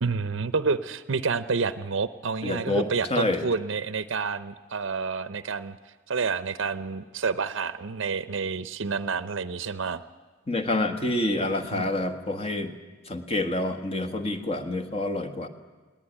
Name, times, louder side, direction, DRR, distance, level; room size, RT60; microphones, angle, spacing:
voice 1, 0.0-5.8 6.1-10.0 11.7-11.9, right 4 dB, 65° right, 13 dB, 0.7 m, -29 dB
voice 2, 2.4-3.4 10.5-12.7 13.1-15.5, left 2 dB, 30° left, 8 dB, 1.6 m, -27 dB
20.5 x 18.0 x 10.0 m, 1.3 s
head